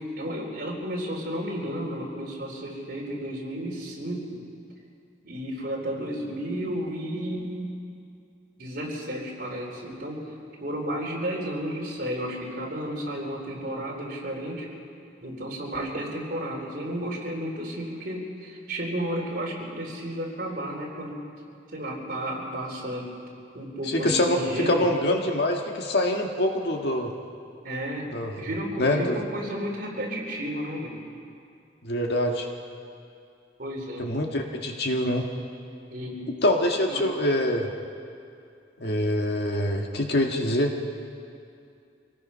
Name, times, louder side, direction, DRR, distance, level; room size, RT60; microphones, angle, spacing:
voice 1, 0.0-4.4 5.2-7.8 8.6-10.3 10.6-14.7 15.2-21.2 21.7-23.1 23.5-24.9 27.6-28.1 28.4-31.0 33.6-34.1 35.9-36.4 36.9-37.0, equal, 50° right, -1 dB, 3.9 m, -32 dB
voice 2, 23.9-24.4 24.7-27.1 28.1-28.3 28.8-29.2 31.8-32.5 34.0-35.3 36.4-37.7 38.8-40.8, left 1 dB, 60° left, 2 dB, 1.8 m, -25 dB
25.0 x 18.5 x 5.7 m, 2.5 s
head